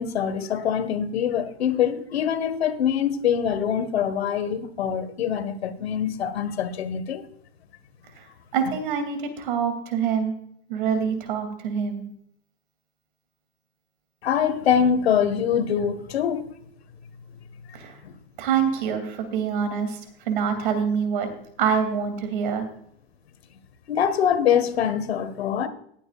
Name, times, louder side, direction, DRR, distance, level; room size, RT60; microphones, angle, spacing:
voice 1, 0.0-7.3 14.2-16.5 18.0-18.1 23.9-25.7, left 8 dB, 90° left, 1.7 m, -24 dB
voice 2, 8.5-10.3 10.7-12.1 17.7-18.0 18.4-20.0 20.2-21.3 21.6-22.6, right 7 dB, 55° right, 2.8 m, -25 dB
20.0 x 9.1 x 2.5 m
supercardioid pair, 165°, 31 cm